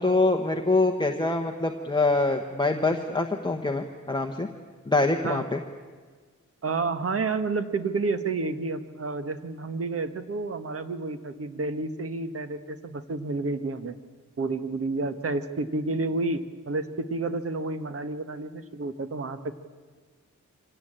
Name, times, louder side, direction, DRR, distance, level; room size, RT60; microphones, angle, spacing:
voice 1, 0.0-4.5 4.9-5.6, left 2 dB, 15° left, 1 dB, 1.1 m, -25 dB
voice 2, 6.6-14.0 14.4-19.5, right 3 dB, 50° right, 10 dB, 1.3 m, -30 dB
24.5 x 17.5 x 8.9 m, 1.5 s
wide cardioid pair, 155°, 30 cm